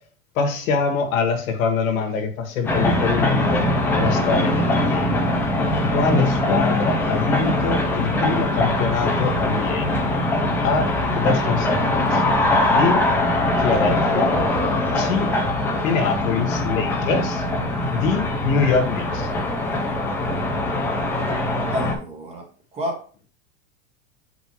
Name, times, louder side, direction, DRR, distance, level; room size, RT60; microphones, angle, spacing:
voice 1, 0.4-3.7 3.9-5.1 5.9-9.9 10.6-12.2 12.7-13.1 13.6-14.3 14.9-15.4 15.8-17.4 17.9-19.3, left 5 dB, 85° left, 4 dB, 1.9 m, -24 dB
sound 1, 2.6-21.9, left 1 dB, 5° left, 0.4 m, -22 dB
voice 2, 21.7-23.3, equal, 15° right, 2 dB, 1.0 m, -31 dB
7.5 x 5.2 x 3.1 m, 0.40 s
supercardioid pair, 175°, 39 cm